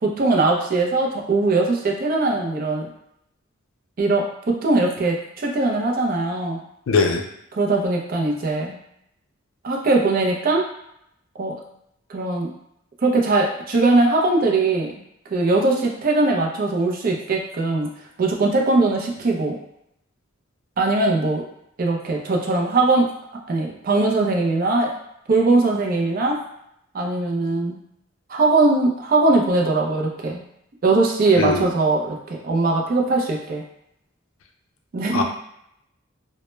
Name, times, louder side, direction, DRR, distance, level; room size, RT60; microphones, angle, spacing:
voice 1, 0.0-2.9 4.0-6.6 7.5-8.8 9.6-10.6 11.4-11.6 12.1-12.5 13.0-14.9 15.3-17.9 18.2-19.6 20.8-21.4 21.8-23.1 23.5-24.9 25.3-26.4 26.9-27.8 28.3-30.4 30.8-33.6 34.9-35.2, right 3 dB, 45° right, 0 dB, 0.4 m, -20 dB
voice 2, 6.9-7.2 31.4-31.7 35.1-35.2, left 4 dB, 85° left, 3 dB, 0.4 m, -20 dB
2.1 x 2.0 x 3.0 m, 0.76 s
head